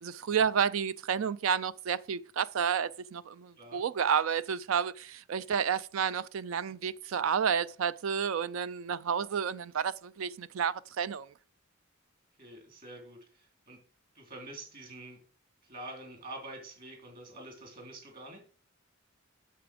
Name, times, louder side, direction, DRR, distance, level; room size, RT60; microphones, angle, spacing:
voice 1, 0.0-11.3, right 7 dB, 70° right, 0.4 m, -30 dB
voice 2, 12.4-13.8 14.1-15.2 15.6-18.4, right 2 dB, 45° right, 3.6 m, -46 dB
8.3 x 6.9 x 5.1 m
head